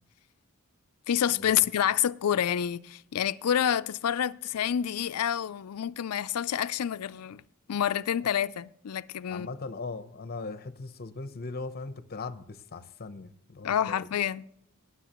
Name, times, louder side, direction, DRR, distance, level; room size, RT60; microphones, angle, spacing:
voice 1, 1.1-7.4 7.7-9.5 13.6-14.4, left 9 dB, 80° left, 0.4 m, -28 dB
voice 2, 9.3-14.1, left 3 dB, 45° left, 0.8 m, -39 dB
20.0 x 7.2 x 3.0 m
head